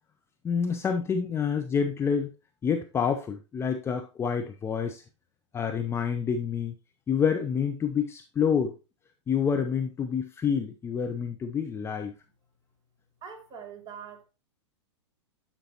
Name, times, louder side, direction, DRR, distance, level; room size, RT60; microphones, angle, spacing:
voice 1, 0.4-2.3 2.6-5.0 5.5-6.7 7.1-8.7 9.3-12.1, left 7 dB, 15° left, 0.6 m, -28 dB
voice 2, 13.2-14.2, right 7 dB, 25° right, 2.3 m, -43 dB
11.5 x 5.2 x 2.9 m
figure-of-eight pair, 105°, 16 cm